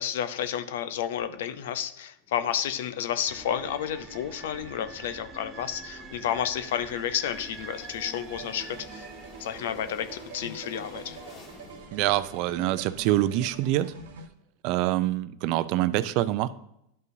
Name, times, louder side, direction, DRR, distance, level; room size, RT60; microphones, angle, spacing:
voice 1, 0.0-9.1 9.4-11.2, left 10 dB, 75° left, 12 dB, 0.6 m, -31 dB
sound 1, 2.2-14.0, left 3 dB, 45° left, 1.8 m, -52 dB
sound 2, 3.3-14.3, right 4 dB, 25° right, 1.3 m, -47 dB
sound 3, 8.3-14.3, right 5 dB, 85° right, 1.0 m, -46 dB
voice 2, 11.9-13.9 14.6-16.5, right 14 dB, 55° right, 15 dB, 0.5 m, -25 dB
11.0 x 5.4 x 2.7 m, 0.78 s
hypercardioid pair, 110°, 0 cm